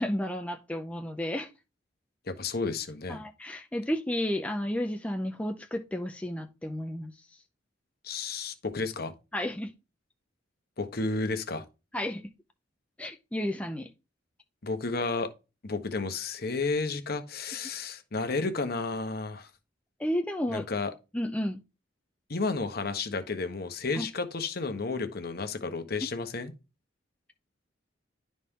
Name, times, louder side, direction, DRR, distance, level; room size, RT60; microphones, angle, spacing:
voice 1, 0.0-1.5 3.1-7.1 9.3-9.7 11.9-12.2 13.0-13.9 20.0-20.6 21.1-21.6 24.0-24.1, left 1 dB, 5° left, 0.5 m, -32 dB
voice 2, 2.3-3.2 8.0-9.1 10.8-11.6 14.6-15.3 15.6-19.5 20.5-20.9 22.3-26.5, left 3 dB, 50° left, 1.0 m, -32 dB
11.0 x 4.2 x 3.6 m
head